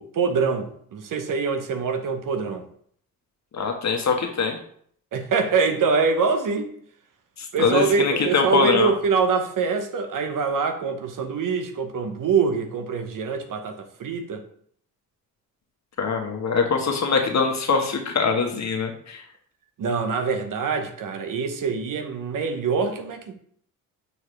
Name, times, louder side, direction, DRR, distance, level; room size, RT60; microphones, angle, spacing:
voice 1, 0.0-2.6 5.1-6.7 7.5-14.4 19.8-23.3, right 5 dB, 60° right, 1.0 m, -24 dB
voice 2, 3.5-4.6 7.4-8.9 16.0-19.2, left 5 dB, 45° left, 1.4 m, -23 dB
6.8 x 4.6 x 3.3 m
supercardioid pair, 60°, 37 cm